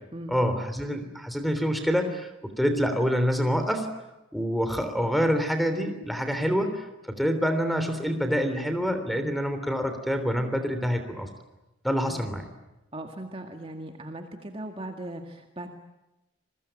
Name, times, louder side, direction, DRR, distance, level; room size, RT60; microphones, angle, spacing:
voice 1, 0.3-3.9 4.3-11.3 11.8-12.4, equal, ahead, 8 dB, 3.4 m, -26 dB
voice 2, 12.9-15.7, right 1 dB, 30° right, 4 dB, 2.1 m, -38 dB
29.5 x 22.0 x 9.0 m, 0.96 s
head